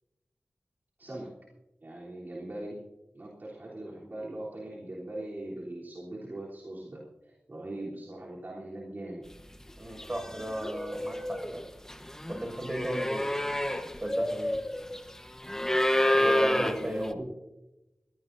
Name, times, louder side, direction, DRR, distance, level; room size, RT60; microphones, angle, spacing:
voice 1, 1.0-1.3 1.8-2.8 3.1-9.2 16.2-17.3, right 1 dB, 50° right, -6 dB, 3.4 m, -40 dB
sound 1, 9.6-9.7 10.0-17.1, left 1 dB, 10° left, 1.2 m, -29 dB
voice 2, 9.8-11.6 12.3-13.2 14.0-14.5 16.1-17.2, right 1 dB, 30° right, 2 dB, 6.0 m, -34 dB
22.0 x 18.0 x 2.7 m, 1.0 s
wide cardioid pair, 70°, 4 cm